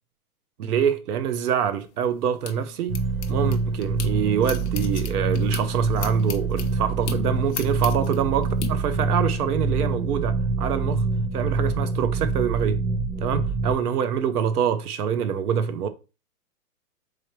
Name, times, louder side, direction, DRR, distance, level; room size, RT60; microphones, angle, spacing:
voice 1, 0.6-3.0 3.3-11.0 11.3-12.8 13.2-15.9, right 8 dB, 75° right, 0.7 m, -25 dB
sound 1, 1.7-4.1 4.4-8.7, left 8 dB, 50° left, 0.6 m, -37 dB
sound 2, 2.9-13.7, right 3 dB, 55° right, 1.0 m, -25 dB
3.8 x 3.2 x 3.0 m
hypercardioid pair, 180°, 46 cm